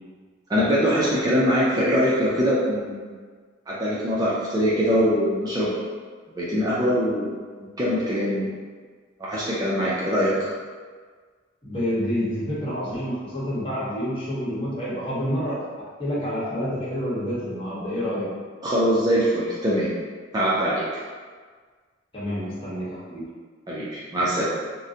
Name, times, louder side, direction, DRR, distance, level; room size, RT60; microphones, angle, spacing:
voice 1, 0.5-3.1 3.7-5.7 6.4-8.5 9.2-10.3 18.6-19.9 20.3-20.9 23.7-24.4, equal, 20° right, -7 dB, 0.4 m, -23 dB
voice 2, 11.6-15.6 16.0-18.3 22.1-23.2, equal, 25° left, -10 dB, 1.0 m, -28 dB
3.7 x 2.1 x 2.6 m, 1.5 s
head